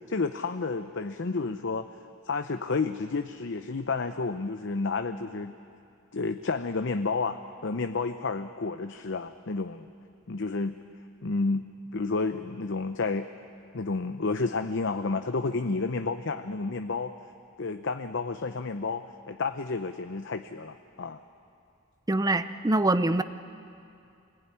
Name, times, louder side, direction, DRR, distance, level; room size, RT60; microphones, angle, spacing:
voice 1, 0.0-1.9 2.3-5.5 6.1-9.9 10.3-10.8 11.2-13.3 13.7-17.1 17.6-21.2, left 3 dB, 60° left, 8 dB, 0.7 m, -31 dB
voice 2, 22.1-23.2, right 2 dB, 15° right, 12 dB, 0.6 m, -24 dB
25.0 x 20.0 x 9.8 m, 2.5 s
head